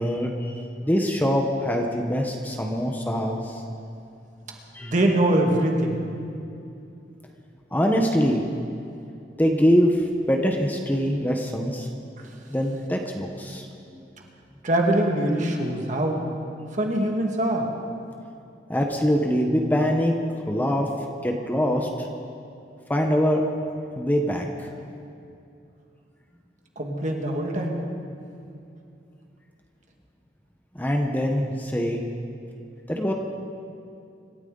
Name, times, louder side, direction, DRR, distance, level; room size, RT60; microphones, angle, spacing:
voice 1, 0.0-3.6 4.7-4.9 7.7-8.4 9.4-11.9 12.5-13.7 13.9-14.0 18.7-20.2 20.5-20.9 21.2-22.1 22.9-23.4 24.0-24.7 30.7-32.0 32.9-33.1, equal, 10° left, 2 dB, 1.0 m, -23 dB
voice 2, 4.8-6.0 12.2-12.3 14.6-16.2 16.7-17.7 26.8-27.8, right 1 dB, 45° right, 1 dB, 2.0 m, -23 dB
26.0 x 13.0 x 3.9 m, 2.6 s
head